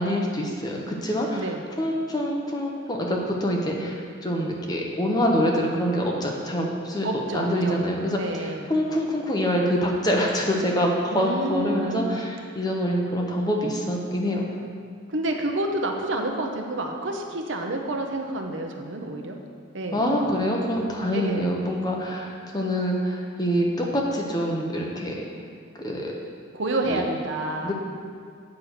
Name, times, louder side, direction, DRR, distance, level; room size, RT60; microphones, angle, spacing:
voice 1, 0.0-1.5 1.8-4.0 4.2-7.1 7.3-14.5 19.9-25.2 25.8-26.1 26.8-27.0 27.6-27.7, equal, 20° left, -1 dB, 0.9 m, -25 dB
voice 2, 7.0-7.8 8.2-8.7 11.1-12.2 15.1-19.4 19.7-20.2 21.1-21.5 26.5-27.7, right 2 dB, 70° right, 3 dB, 0.8 m, -29 dB
8.4 x 4.7 x 6.6 m, 2.2 s
head